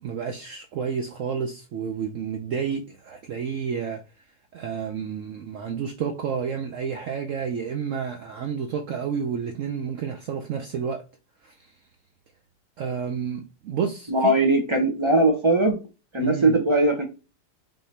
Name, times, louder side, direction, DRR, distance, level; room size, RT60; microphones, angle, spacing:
voice 1, 0.0-4.0 4.5-11.0 11.4-11.6 12.8-14.4 16.2-16.6, right 7 dB, 70° right, 0.7 m, -30 dB
voice 2, 14.1-15.8 16.1-17.1, right 2 dB, 45° right, 0.3 m, -20 dB
5.5 x 2.8 x 3.2 m
omnidirectional pair, 1.9 m